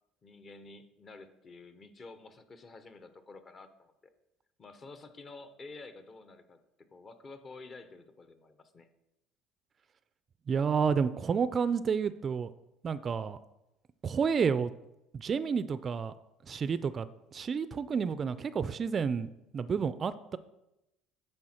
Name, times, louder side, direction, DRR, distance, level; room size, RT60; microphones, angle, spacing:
voice 1, 0.2-4.1 4.6-6.6 6.9-8.9, left 3 dB, 35° left, 10 dB, 0.8 m, -50 dB
voice 2, 10.5-12.5 12.8-13.4 14.0-14.7 15.1-16.1 16.5-20.4, right 6 dB, 40° right, 15 dB, 0.3 m, -30 dB
9.9 x 4.4 x 4.3 m, 0.91 s
supercardioid pair, 85°, 0 cm